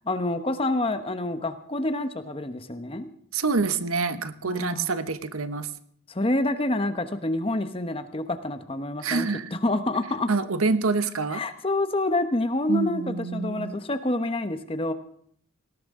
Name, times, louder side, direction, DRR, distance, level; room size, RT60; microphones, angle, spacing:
voice 1, 0.0-3.1 4.4-4.9 6.1-10.3 11.3-14.9, left 2 dB, 25° left, 9 dB, 1.0 m, -27 dB
voice 2, 3.3-5.7 9.0-9.5 10.3-11.4 12.7-13.8, right 4 dB, 85° right, 11 dB, 1.0 m, -26 dB
18.5 x 18.0 x 3.7 m, 0.65 s
head